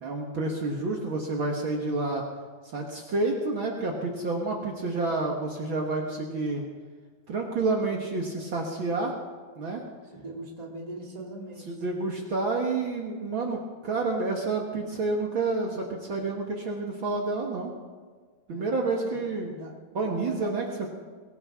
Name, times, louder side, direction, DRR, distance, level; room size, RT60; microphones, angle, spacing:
voice 1, 0.0-2.2 2.7-6.6 7.3-9.1 9.6-9.8 11.7-17.7 18.5-19.6 19.9-20.6, right 3 dB, 85° right, 0 dB, 1.1 m, -29 dB
voice 2, 10.2-12.1 18.5-19.2 19.5-20.9, right 2 dB, 15° right, -1 dB, 1.4 m, -41 dB
22.5 x 16.5 x 3.7 m, 1.5 s
omnidirectional pair, 4.9 m